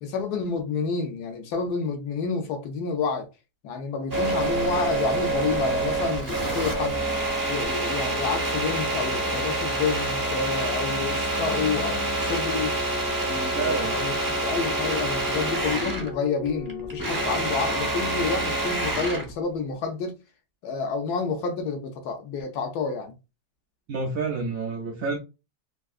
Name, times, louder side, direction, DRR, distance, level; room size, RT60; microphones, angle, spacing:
voice 1, 0.0-3.3 3.6-7.0 7.5-12.7 13.1-14.1 14.4-20.2 20.6-23.1, left 5 dB, 70° left, 1.0 m, -29 dB
sound 1, 4.1-17.9, left 8 dB, 90° left, 1.4 m, -40 dB
sound 2, 4.1-16.1 16.5-19.3, right 2 dB, 25° right, 0.4 m, -27 dB
voice 2, 13.5-14.0 23.9-25.2, right 4 dB, 75° right, 0.8 m, -29 dB
3.5 x 2.6 x 2.4 m
omnidirectional pair, 1.9 m